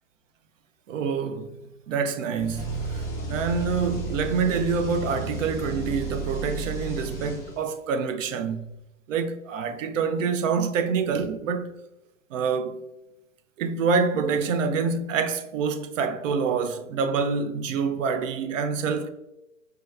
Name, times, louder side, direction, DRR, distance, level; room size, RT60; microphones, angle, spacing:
voice 1, 0.9-1.6 1.9-8.7 9.1-11.7 12.3-12.8 13.6-19.1, right 5 dB, 70° right, 0.5 m, -26 dB
sound 1, 2.4-7.9, right 2 dB, 10° left, 0.3 m, -33 dB
4.5 x 2.2 x 2.3 m
hypercardioid pair, 110°, 41 cm